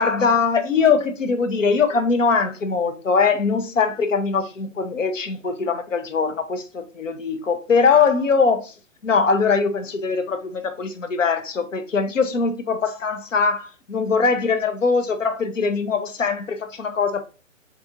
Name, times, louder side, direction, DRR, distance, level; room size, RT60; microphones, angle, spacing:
voice 1, 0.0-8.7 9.0-17.2, left 5 dB, 75° left, 1.0 m, -21 dB
7.3 x 2.6 x 2.5 m
figure-of-eight pair, 130°, 39 cm